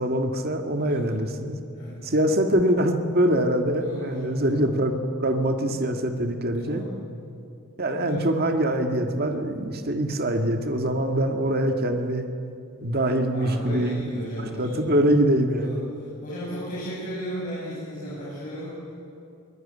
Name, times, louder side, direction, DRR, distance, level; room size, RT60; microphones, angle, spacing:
voice 1, 0.0-1.6 2.0-4.9 5.2-6.8 7.8-12.3 12.8-14.0 14.4-15.8, right 1 dB, 45° right, 5 dB, 1.8 m, -24 dB
voice 2, 1.7-2.1 3.8-4.6 6.5-7.0 8.0-8.2 13.3-15.0 15.6-19.0, equal, 35° left, -8 dB, 7.2 m, -35 dB
22.5 x 18.5 x 9.9 m, 2.5 s
head